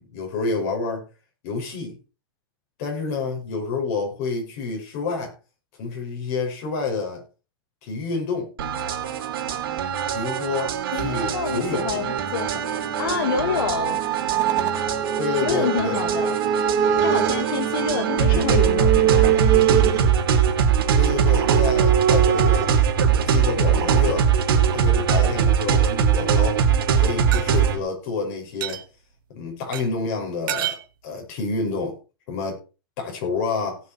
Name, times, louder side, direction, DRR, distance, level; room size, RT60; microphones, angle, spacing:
voice 1, 0.1-1.0 1.4-2.0 2.8-5.3 5.8-7.2 7.8-8.5 10.1-12.0 15.2-16.0 18.3-18.4 21.0-22.7 23.2-24.3 24.7-26.6 27.0-28.8 29.3-30.8 31.0-31.9 32.3-32.6 33.0-33.8, left 4 dB, 45° left, 1 dB, 5.8 m, -28 dB
sound 1, 8.6-27.8, right 7 dB, 80° right, 2.6 m, -22 dB
voice 2, 10.9-14.0 15.4-16.4 17.0-19.3, left 7 dB, 85° left, 8 dB, 1.4 m, -28 dB
sound 2, 12.1-22.7, right 9 dB, 30° right, 1.6 m, -24 dB
sound 3, 25.3-26.0 27.3-27.4 28.6-28.8 29.7-29.8 30.5-30.8, right 12 dB, 65° right, 1.5 m, -29 dB
18.0 x 6.1 x 4.4 m, 0.33 s
supercardioid pair, 170°, 12 cm